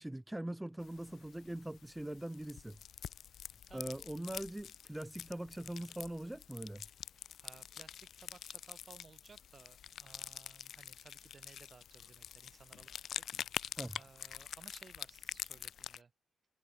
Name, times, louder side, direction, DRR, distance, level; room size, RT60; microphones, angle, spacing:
voice 1, 0.0-2.8 3.7-6.8 13.8-14.0, right 1 dB, 5° right, 0.9 m, -42 dB
sound 1, 0.8-16.0, left 9 dB, 65° left, 0.8 m, -47 dB
voice 2, 3.7-4.0 7.4-13.2 14.0-16.1, right 5 dB, 35° right, 1.8 m, -59 dB
cardioid pair, 115°, 0 cm